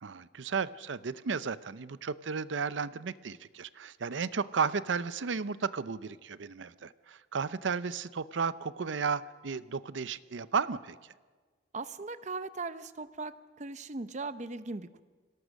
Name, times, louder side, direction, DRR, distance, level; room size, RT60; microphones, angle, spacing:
voice 1, 0.0-11.1, right 5 dB, 75° right, 15 dB, 0.6 m, -34 dB
voice 2, 11.7-15.0, right 3 dB, 40° right, 12 dB, 0.7 m, -39 dB
25.5 x 17.5 x 6.5 m, 1.4 s
head